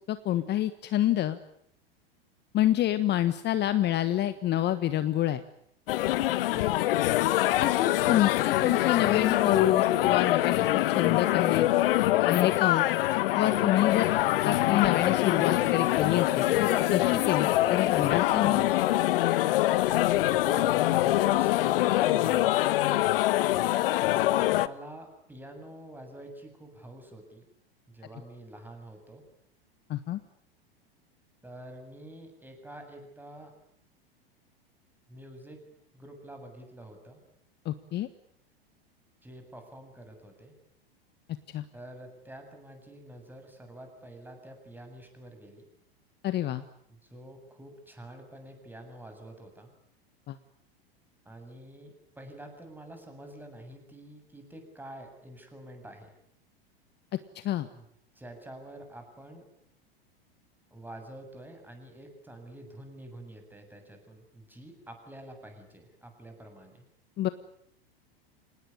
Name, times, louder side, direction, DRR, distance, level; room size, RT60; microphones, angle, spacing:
voice 1, 0.1-1.4 2.5-5.4 7.6-11.7 12.3-12.9 13.4-14.1 14.4-18.7 29.9-30.2 37.6-38.1 41.5-41.6 46.2-46.6 50.3-50.4 57.3-57.7 67.2-67.3, left 13 dB, 35° left, 12 dB, 1.4 m, -27 dB
sound 1, 5.9-24.7, left 15 dB, 65° left, 1.2 m, -24 dB
voice 2, 6.5-7.3 20.5-22.6 24.3-27.5 27.9-29.2 31.4-33.5 35.1-35.6 35.9-37.2 39.2-40.5 41.7-45.6 46.9-49.7 51.3-56.1 57.7-57.9 58.1-59.5 60.7-66.8, right 1 dB, 5° right, 5 dB, 7.5 m, -47 dB
26.5 x 19.5 x 9.8 m, 0.72 s
hypercardioid pair, 100°, 30 cm